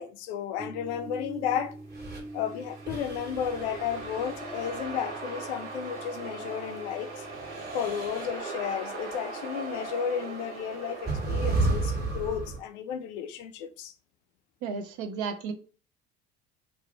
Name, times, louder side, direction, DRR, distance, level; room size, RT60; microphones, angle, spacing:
voice 1, 0.0-1.8 2.3-7.3 7.7-13.9, left 8 dB, 75° left, 0.5 m, -33 dB
sound 1, 0.6-7.8, right 2 dB, 10° right, 0.5 m, -45 dB
sound 2, 1.9-2.2 2.9-4.9 7.3-8.3 9.9-10.0 11.1-12.6, right 3 dB, 30° right, 1.3 m, -32 dB
sound 3, 2.1-12.0, right 3 dB, 85° right, 1.2 m, -40 dB
voice 2, 14.6-15.5, right 5 dB, 65° right, 0.7 m, -33 dB
2.7 x 2.1 x 3.9 m
hypercardioid pair, 70°, 33 cm